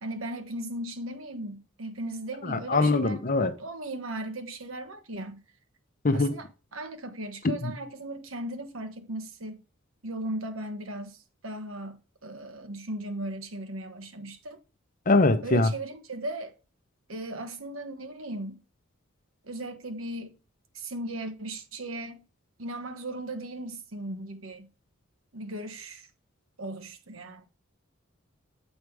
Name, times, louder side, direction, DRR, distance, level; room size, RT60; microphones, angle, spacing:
voice 1, 0.0-5.4 6.1-6.5 6.7-9.6 10.0-14.6 15.4-16.5 17.1-18.6 19.4-20.4 20.7-22.2 22.6-24.7 25.3-26.1 26.6-27.5, right 1 dB, 80° right, 1.3 m, -37 dB
voice 2, 2.4-3.5 6.0-6.4 7.6-7.7 15.1-15.7, left 2 dB, 45° left, 0.8 m, -23 dB
8.0 x 5.0 x 4.8 m
head